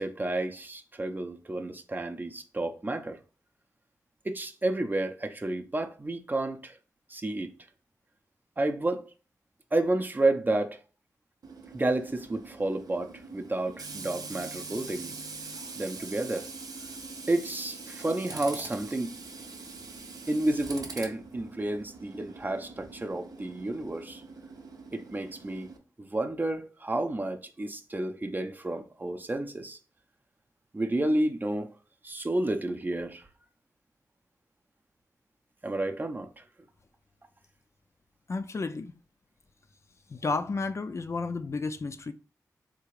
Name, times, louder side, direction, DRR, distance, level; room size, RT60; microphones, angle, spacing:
voice 1, 0.0-3.2 4.2-6.8 7.1-7.5 8.6-9.1 9.7-10.8 11.7-15.1 15.8-16.5 17.3-19.1 20.3-24.2 24.9-25.7 26.0-29.8 30.7-31.7 32.0-33.2 35.6-36.4, right 2 dB, 30° right, 0.5 m, -31 dB
Tools, 11.4-25.8, right 4 dB, 70° right, 0.6 m, -43 dB
voice 2, 38.3-38.9 40.1-42.1, left 3 dB, 45° left, 0.4 m, -32 dB
3.5 x 2.4 x 3.1 m
cardioid pair, 55°, 7 cm